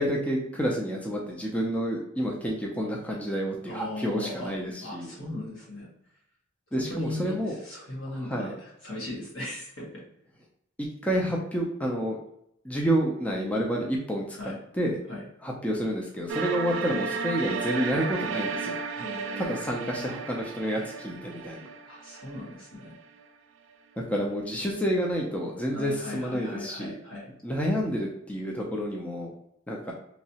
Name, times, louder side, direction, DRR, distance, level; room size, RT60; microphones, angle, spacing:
voice 1, 0.0-5.1 6.7-7.6 8.1-8.5 10.8-12.2 12.6-14.4 14.7-15.0 15.4-18.7 19.4-21.7 24.0-27.0 27.4-29.3 29.7-29.9, equal, 5° left, -1 dB, 0.4 m, -29 dB
voice 2, 3.6-4.5 4.8-5.9 6.7-10.0 14.4-14.6 15.1-15.2 18.9-20.1 21.9-22.9 25.7-27.3, left 1 dB, 70° left, -5 dB, 1.5 m, -38 dB
sound 1, 16.3-23.2, right 4 dB, 75° right, 0.3 m, -34 dB
3.1 x 2.8 x 2.8 m, 0.76 s
head